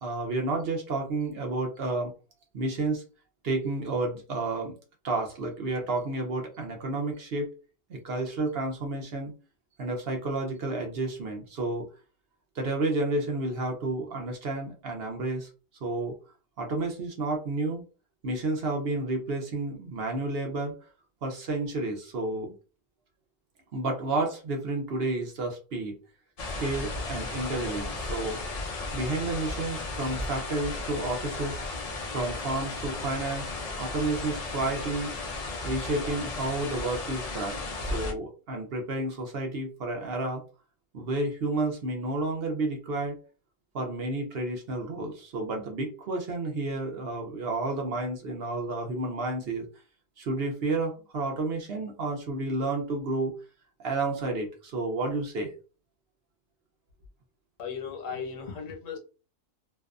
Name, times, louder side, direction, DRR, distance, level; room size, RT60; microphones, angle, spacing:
voice 1, 0.0-2.1 2.5-3.0 3.4-4.7 5.0-7.5 7.9-9.3 9.8-11.9 12.6-15.5 15.8-16.2 16.6-17.8 18.2-20.7 21.2-22.5 23.7-26.0 26.6-28.4 28.9-31.6 32.1-33.5 33.8-35.1 35.6-37.6 37.9-40.4 40.9-43.2 43.7-49.7 50.2-53.3 53.8-55.5, right 2 dB, 60° right, 2 dB, 0.8 m, -31 dB
sound 1, 26.4-38.1, left 2 dB, 60° left, 0.3 m, -35 dB
voice 2, 57.6-59.0, left 6 dB, 80° left, 3 dB, 1.2 m, -36 dB
2.6 x 2.2 x 2.4 m, 0.34 s
omnidirectional pair, 1.3 m